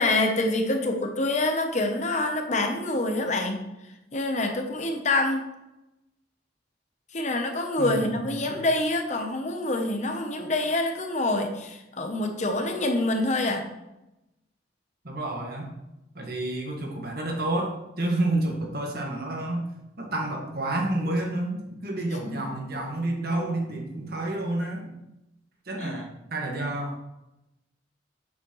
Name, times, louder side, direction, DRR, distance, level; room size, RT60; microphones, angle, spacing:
voice 1, 0.0-3.6 4.1-5.5 7.1-13.7 22.3-22.4 25.8-26.0, left 2 dB, 40° left, 5 dB, 0.8 m, -26 dB
voice 2, 7.8-8.5 15.0-15.7 16.2-19.7 20.0-25.0 25.7-27.0, right 1 dB, 55° right, 1 dB, 1.6 m, -30 dB
7.9 x 7.3 x 3.1 m, 0.92 s
head